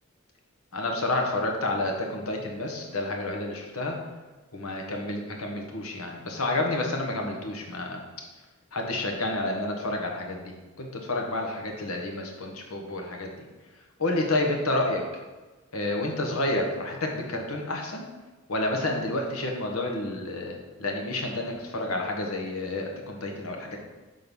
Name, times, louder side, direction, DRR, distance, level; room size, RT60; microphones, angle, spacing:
voice 1, 0.7-3.9 4.5-8.0 8.7-13.5 14.0-15.0 15.7-18.0 18.5-23.8, left 2 dB, 90° left, 1 dB, 1.2 m, -30 dB
6.4 x 3.8 x 5.3 m, 1.2 s
head